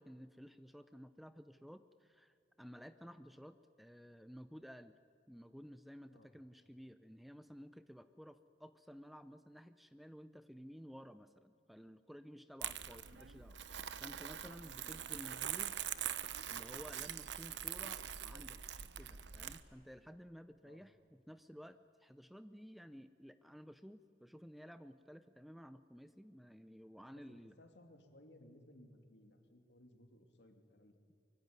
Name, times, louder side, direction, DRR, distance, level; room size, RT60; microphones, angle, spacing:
voice 1, 0.0-5.0 5.3-15.8 16.5-21.0 21.3-27.6, equal, ahead, 11 dB, 0.6 m, -54 dB
Crumpling crinkling, 12.6-19.6, right 10 dB, 75° right, 1.0 m, -43 dB
voice 2, 27.1-30.9, left 1 dB, 65° left, 5 dB, 2.8 m, -61 dB
24.0 x 23.0 x 9.5 m, 2.6 s
head